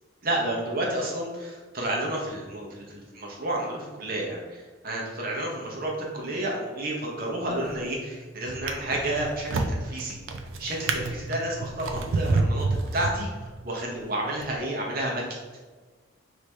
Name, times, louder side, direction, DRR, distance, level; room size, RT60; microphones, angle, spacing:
voice 1, 0.2-10.2 10.6-15.2, right 1 dB, 45° right, -2 dB, 1.0 m, -31 dB
Drawer open or close, 7.5-7.9 8.5-13.7 14.4-14.5, right 3 dB, 75° right, 0.5 m, -29 dB
4.7 x 2.9 x 3.4 m, 1.4 s
head